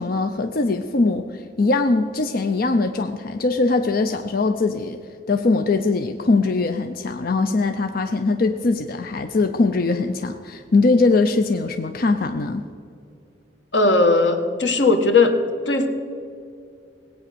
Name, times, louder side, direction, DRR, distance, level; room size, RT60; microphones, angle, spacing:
voice 1, 0.0-5.0 5.3-12.7, left 3 dB, 55° left, 7 dB, 0.6 m, -21 dB
voice 2, 13.7-15.3 15.7-15.9, left 3 dB, 90° left, 6 dB, 1.5 m, -17 dB
18.5 x 8.8 x 6.9 m, 2.4 s
head